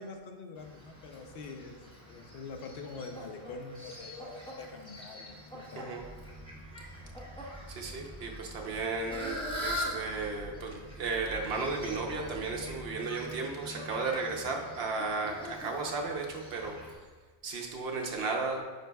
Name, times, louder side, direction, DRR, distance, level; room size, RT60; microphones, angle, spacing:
voice 1, 0.0-1.8 2.1-5.9, left 4 dB, 65° left, 4 dB, 0.9 m, -44 dB
Fowl, 0.6-16.9, equal, 5° left, 1.1 m, -43 dB
sound 1, 6.0-12.9, right 1 dB, 45° left, 1.3 m, -48 dB
voice 2, 7.7-16.8 17.4-18.6, right 3 dB, 70° right, 1 dB, 1.0 m, -34 dB
9.1 x 5.0 x 2.3 m, 1.4 s
omnidirectional pair, 1.1 m